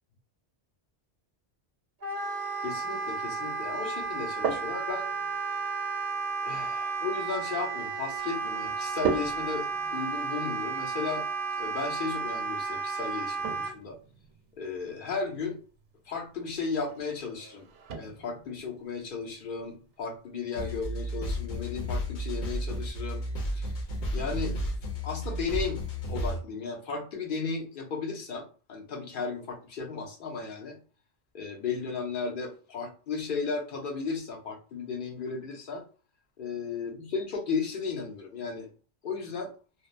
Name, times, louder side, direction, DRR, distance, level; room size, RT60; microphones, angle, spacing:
Wind instrument woodwind instrument, 2.0-13.7, right 5 dB, 55° right, 0.7 m, -33 dB
voice 1, 2.6-5.1 6.4-11.3 11.6-14.0 14.6-15.6 16.1-17.7 17.9-23.2 23.5-23.7 24.1-24.7 25.0-25.8 26.1-30.8 31.3-35.8 36.4-38.7 39.0-39.5, left 5 dB, 55° left, 1 dB, 0.9 m, -35 dB
sound 1, 4.0-22.1, right 5 dB, 90° right, 0.9 m, -41 dB
sound 2, 20.5-26.4, equal, 75° left, 1.0 m, -32 dB
2.7 x 2.1 x 2.4 m, 0.36 s
omnidirectional pair, 1.2 m